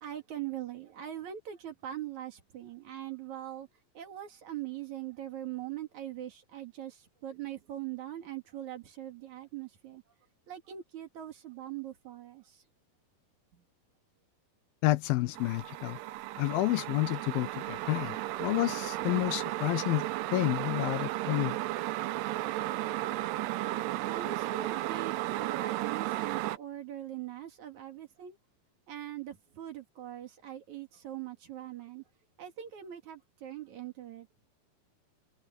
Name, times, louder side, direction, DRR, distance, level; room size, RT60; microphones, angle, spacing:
voice 1, 0.0-3.7 3.9-10.0 10.5-12.6 13.5-13.6 23.8-28.4 28.9-32.0 32.4-34.3, right 12 dB, 50° right, 3.2 m, -42 dB
voice 2, 14.8-16.0 16.4-21.6, left 18 dB, 80° left, 2.4 m, -30 dB
sound 1, 15.3-26.6, right 16 dB, 85° right, 2.9 m, -34 dB
omnidirectional pair, 4.6 m